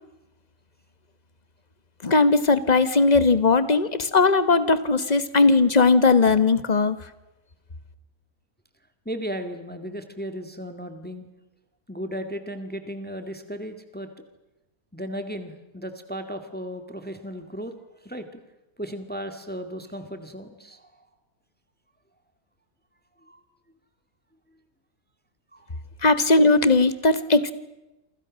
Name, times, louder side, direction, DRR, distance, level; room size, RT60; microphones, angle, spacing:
voice 1, 2.0-7.1 26.0-27.5, left 3 dB, 30° left, 13 dB, 1.3 m, -19 dB
voice 2, 9.1-11.3 11.9-14.1 14.9-17.7 18.0-18.4 18.8-21.1 23.2-23.4 25.5-25.8, equal, 5° left, 7 dB, 2.0 m, -35 dB
28.5 x 25.5 x 6.4 m, 0.97 s
omnidirectional pair, 1.6 m